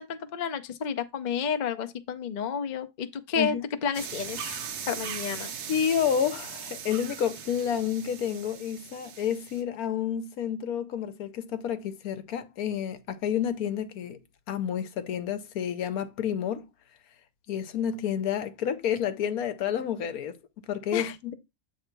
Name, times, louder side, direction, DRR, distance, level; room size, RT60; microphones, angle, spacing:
voice 1, 0.0-3.6 3.8-4.6 4.9-5.5 20.9-21.1, left 6 dB, 45° left, 0.6 m, -31 dB
sound 1, 3.9-9.6, right 7 dB, 85° right, 1.3 m, -39 dB
voice 2, 5.7-14.2 14.5-16.7 17.5-21.3, left 8 dB, 75° left, 1.2 m, -30 dB
7.8 x 3.5 x 4.5 m
omnidirectional pair, 1.6 m